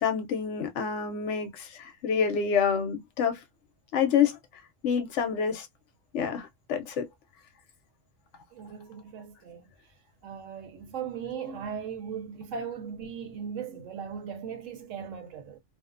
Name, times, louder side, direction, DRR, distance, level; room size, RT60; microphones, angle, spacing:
voice 1, 0.0-3.4 3.9-4.4 4.8-5.7 6.1-7.1, left 7 dB, 70° left, 0.8 m, -27 dB
voice 2, 8.5-9.7 10.2-15.6, right 7 dB, 75° right, 1.0 m, -38 dB
2.5 x 2.1 x 2.4 m
omnidirectional pair, 1.4 m